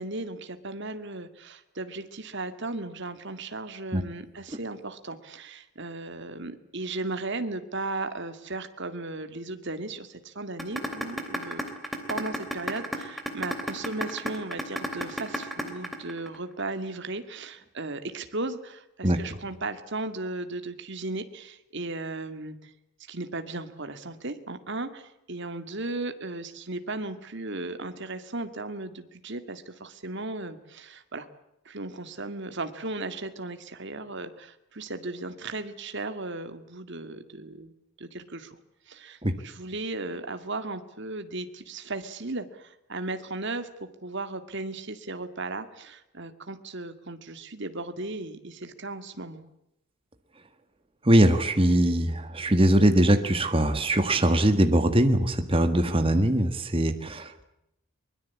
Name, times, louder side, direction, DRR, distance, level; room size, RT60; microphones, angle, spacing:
voice 1, 0.0-11.6 12.1-22.7 23.1-31.3 31.7-37.7 38.0-38.6 38.9-43.7 44.0-49.5, right 2 dB, 50° right, 9 dB, 2.2 m, -36 dB
sound 1, 10.6-16.6, equal, ahead, 3.2 m, -31 dB
voice 2, 51.0-57.4, right 1 dB, 25° right, 7 dB, 1.7 m, -22 dB
23.5 x 21.5 x 8.4 m, 0.84 s
head